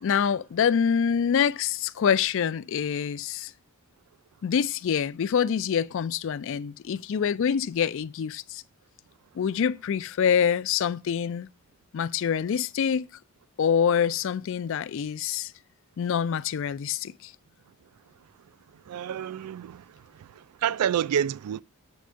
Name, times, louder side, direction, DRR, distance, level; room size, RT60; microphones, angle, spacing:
voice 1, 0.0-3.5 4.4-8.6 9.4-11.5 11.9-13.1 13.6-15.5 16.0-17.3, left 7 dB, 60° left, 0.3 m, -26 dB
voice 2, 18.9-19.8 20.1-21.6, right 9 dB, 85° right, 0.3 m, -28 dB
7.9 x 3.4 x 6.2 m
head